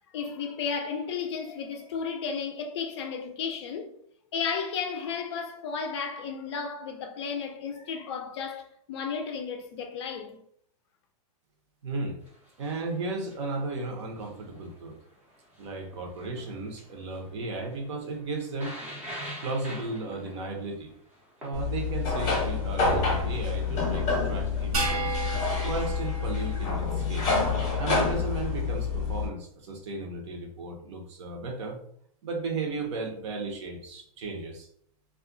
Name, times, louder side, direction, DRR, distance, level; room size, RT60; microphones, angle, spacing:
voice 1, 0.1-3.9 4.3-10.4, left 6 dB, 45° left, 0.4 m, -33 dB
voice 2, 11.8-12.2 12.6-15.0 15.6-18.8 19.4-20.9 21.4-25.2 25.6-27.3 27.8-31.8 32.2-34.7, right 3 dB, 50° right, 0.7 m, -35 dB
sound 1, 12.2-25.8, equal, 10° right, 0.5 m, -47 dB
sound 2, 21.5-29.3, left 4 dB, 20° left, 0.8 m, -28 dB
sound 3, 24.7-27.3, right 3 dB, 70° right, 1.2 m, -34 dB
2.4 x 2.2 x 3.7 m
supercardioid pair, 170°, 19 cm